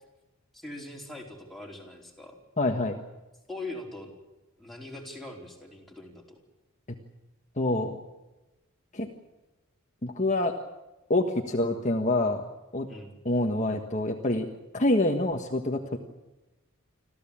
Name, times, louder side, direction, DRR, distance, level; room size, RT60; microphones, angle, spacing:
voice 1, 0.5-2.4 3.5-4.1 4.6-6.4 12.9-13.2, left 2 dB, ahead, -1 dB, 4.3 m, -41 dB
voice 2, 2.6-3.0 7.6-8.0 8.9-9.1 10.0-10.5 11.1-12.4 12.7-12.9 13.2-14.5 14.7-16.0, left 2 dB, 35° left, 3 dB, 1.5 m, -26 dB
26.0 x 15.0 x 8.7 m, 1.1 s
head